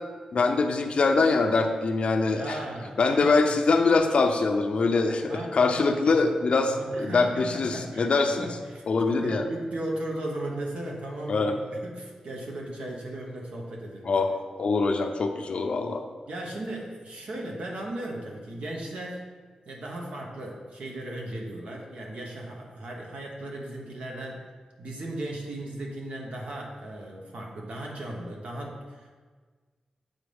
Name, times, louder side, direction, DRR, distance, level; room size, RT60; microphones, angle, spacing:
voice 1, 0.3-2.6 3.0-8.5 8.9-9.5 11.3-11.6 14.1-16.0, left 3 dB, 60° left, 5 dB, 0.5 m, -23 dB
voice 2, 2.3-3.5 5.3-6.2 6.7-14.1 16.3-19.2 19.6-24.4 24.8-29.1, right 1 dB, 75° right, -1 dB, 1.2 m, -36 dB
8.0 x 4.1 x 3.5 m, 1.5 s
wide cardioid pair, 90°, 2 cm